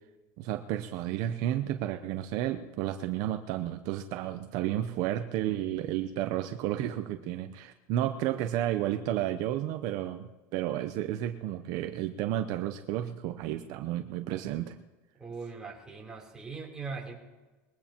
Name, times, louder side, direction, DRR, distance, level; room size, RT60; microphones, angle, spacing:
voice 1, 0.4-14.8, right 12 dB, 55° right, 7 dB, 0.7 m, -32 dB
voice 2, 15.2-17.1, right 4 dB, 10° right, -3 dB, 3.4 m, -40 dB
22.0 x 16.0 x 3.0 m, 1.2 s
supercardioid pair, 140°, 8 cm